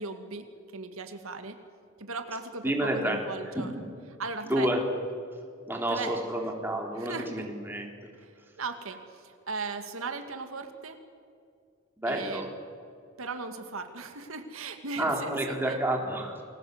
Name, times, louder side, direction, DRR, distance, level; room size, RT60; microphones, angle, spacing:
voice 1, 0.0-1.6 2.0-3.7 4.2-4.7 5.9-6.2 7.0-7.5 8.2-8.3 8.6-11.0 12.1-12.4 13.2-15.8, right 3 dB, 85° right, 7 dB, 2.2 m, -37 dB
voice 2, 2.6-3.2 3.5-3.8 4.4-4.8 5.7-7.9 12.0-12.5 15.0-16.4, right 1 dB, 10° right, 1 dB, 3.7 m, -29 dB
29.0 x 22.0 x 8.1 m, 2.3 s
head